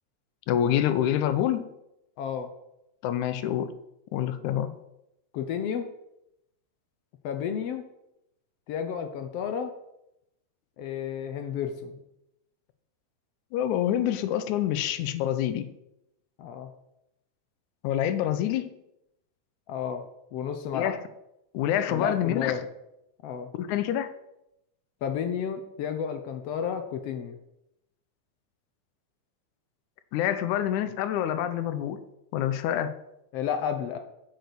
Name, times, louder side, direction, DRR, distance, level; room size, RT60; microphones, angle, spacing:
voice 1, 0.5-1.7 3.0-3.7 4.1-4.7 13.5-15.7 17.8-18.7 20.7-21.0 21.5-22.6 23.6-24.1 30.1-32.0 32.3-33.0, left 11 dB, 85° left, 12 dB, 2.1 m, -26 dB
voice 2, 2.2-2.5 5.3-5.9 7.2-7.9 8.7-9.7 10.8-12.0 16.4-16.7 19.7-20.0 20.3-21.0 21.9-22.6 23.2-23.5 25.0-27.4 33.3-34.0, left 8 dB, 70° left, 7 dB, 1.6 m, -31 dB
7.8 x 6.6 x 6.9 m, 0.85 s
omnidirectional pair, 3.4 m